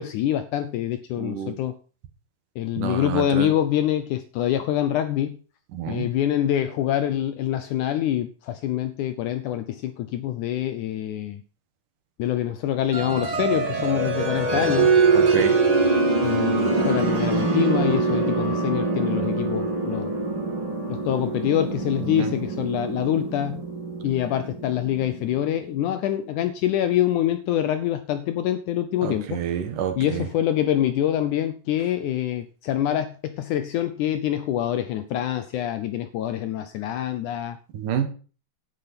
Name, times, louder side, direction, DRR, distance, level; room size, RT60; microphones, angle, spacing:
voice 1, 0.0-1.7 2.6-5.4 5.9-11.4 12.2-15.0 16.2-20.1 20.9-23.6 24.0-29.4 30.0-37.6, left 11 dB, 75° left, 10 dB, 1.9 m, -25 dB
voice 2, 1.2-1.6 2.8-3.5 5.7-6.1 15.1-15.6 22.0-22.3 29.0-30.3 37.7-38.1, right 8 dB, 65° right, 8 dB, 2.8 m, -28 dB
sound 1, 12.9-25.4, right 3 dB, 40° right, 3.3 m, -24 dB
11.0 x 8.6 x 5.9 m, 0.38 s
omnidirectional pair, 4.2 m